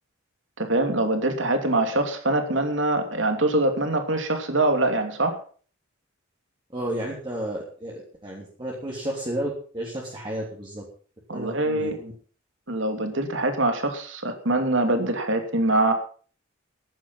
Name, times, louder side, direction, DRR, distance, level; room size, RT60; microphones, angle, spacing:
voice 1, 0.6-5.4 11.3-12.0 12.7-15.9, right 2 dB, 65° right, 6 dB, 2.9 m, -24 dB
voice 2, 6.7-10.8 11.3-12.1, right 1 dB, 25° right, -3 dB, 3.1 m, -32 dB
14.5 x 11.5 x 5.7 m, 0.43 s
head